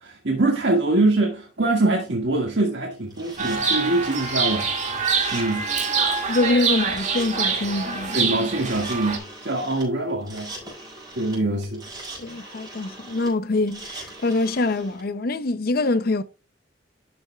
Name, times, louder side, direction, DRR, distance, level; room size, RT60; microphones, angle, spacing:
voice 1, 0.0-4.7 5.3-5.7 8.1-10.5 11.1-11.8, right 2 dB, 80° right, 1.9 m, -23 dB
sound 1, 3.1-15.0, right 2 dB, 25° right, 5.2 m, -41 dB
Chirp tweet, 3.4-9.2, right 5 dB, 40° right, 2.2 m, -25 dB
voice 2, 6.3-8.2 12.2-16.2, left 2 dB, 55° left, 0.6 m, -24 dB
12.0 x 6.8 x 2.3 m
head